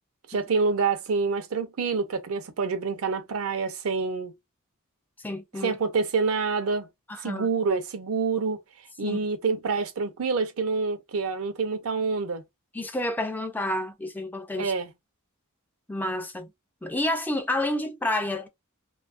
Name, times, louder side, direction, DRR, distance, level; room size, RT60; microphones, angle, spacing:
voice 1, 0.3-4.3 5.6-6.9 7.2-8.6 9.0-12.4 14.6-14.9, right 4 dB, 70° right, 0.5 m, -27 dB
voice 2, 5.2-5.8 7.1-7.5 9.0-9.2 12.7-14.7 15.9-16.5 16.8-18.5, left 1 dB, 10° left, 0.3 m, -29 dB
2.6 x 2.3 x 2.4 m
head